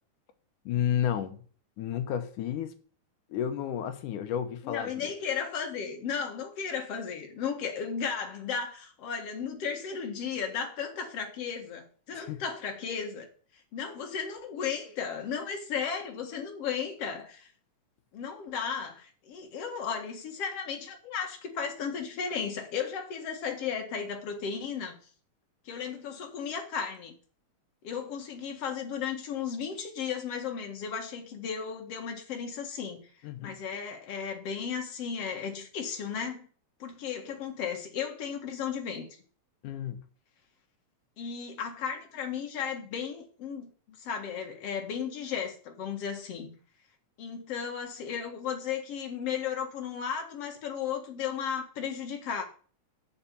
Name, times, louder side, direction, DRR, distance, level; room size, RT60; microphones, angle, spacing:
voice 1, 0.7-1.4 1.8-2.8 3.3-5.1 12.1-12.4 33.2-33.6 39.6-40.0, left 9 dB, 80° left, 2.5 m, -32 dB
voice 2, 4.6-13.3 13.7-17.5 18.1-25.0 25.7-27.1 27.8-33.1 33.4-36.5 36.8-39.1 41.2-46.5 47.2-52.4, left 7 dB, 55° left, 2.7 m, -35 dB
7.2 x 6.5 x 6.9 m
omnidirectional pair, 3.5 m